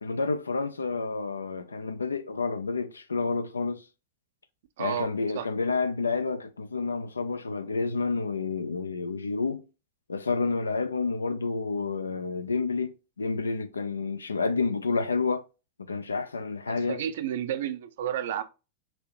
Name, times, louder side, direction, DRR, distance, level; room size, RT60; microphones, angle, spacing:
voice 1, 0.0-3.8 4.8-9.6 10.1-15.4 15.9-17.0, left 4 dB, 75° left, 0.4 m, -29 dB
voice 2, 4.8-5.1 5.3-5.5 16.9-18.4, right 10 dB, 55° right, 0.5 m, -31 dB
6.0 x 2.8 x 3.0 m
figure-of-eight pair, 90°, 0 cm